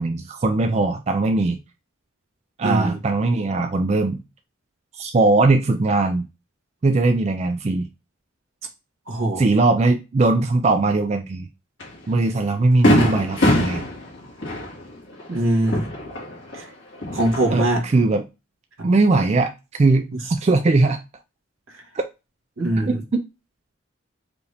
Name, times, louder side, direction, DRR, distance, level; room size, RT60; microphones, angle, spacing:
voice 1, 0.0-1.6 2.6-4.2 4.9-6.3 6.8-7.9 9.4-11.5 12.1-13.8 17.5-18.2 18.8-21.0 21.9-22.0 22.8-23.2, right 3 dB, 30° right, 0.3 m, -20 dB
voice 2, 2.6-3.0 9.1-9.4 15.3-15.8 16.5-16.6 17.1-17.8 18.8-18.9 22.6-22.9, right 1 dB, 80° right, 1.4 m, -22 dB
Fireworks, 11.8-11.9 12.3-12.4 12.8-16.6 16.9-17.8, left 1 dB, 60° left, 1.8 m, -22 dB
4.8 x 2.6 x 3.3 m
head